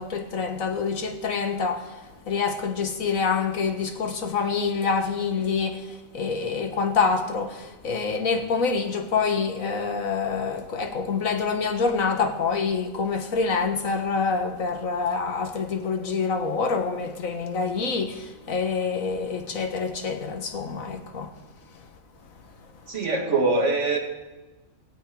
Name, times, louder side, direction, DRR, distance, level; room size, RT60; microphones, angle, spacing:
voice 1, 0.0-1.9 2.3-21.3, left 5 dB, 75° left, 1.7 m, -26 dB
voice 2, 22.9-24.0, right 3 dB, 60° right, 2.3 m, -23 dB
17.5 x 16.5 x 3.8 m
omnidirectional pair, 1.4 m